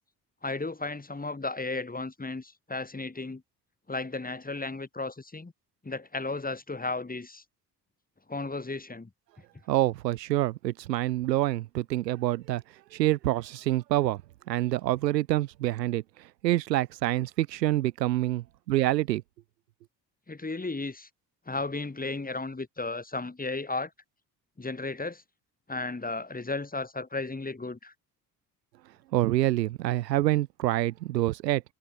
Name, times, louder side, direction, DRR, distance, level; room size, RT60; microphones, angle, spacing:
voice 1, 0.4-3.4 3.9-5.5 5.8-7.4 8.3-9.1 20.3-21.1 21.5-23.9 24.6-25.2 25.7-27.9, left 3 dB, 15° left, 6.4 m, -34 dB
voice 2, 9.7-12.6 12.9-14.2 14.5-16.0 16.4-19.2 29.1-31.6, right 15 dB, 75° right, 0.7 m, -26 dB
figure-of-eight pair, 50°, 50 cm